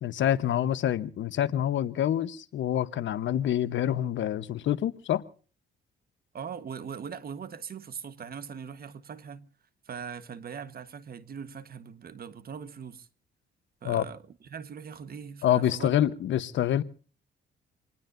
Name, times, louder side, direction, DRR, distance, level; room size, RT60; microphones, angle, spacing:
voice 1, 0.0-5.2 13.8-14.0 15.4-16.8, left 11 dB, 70° left, 1.1 m, -27 dB
voice 2, 6.3-9.5 9.8-13.1 13.8-16.0, right 7 dB, 50° right, 1.4 m, -41 dB
26.5 x 20.0 x 2.7 m
cardioid pair, 90°, 20 cm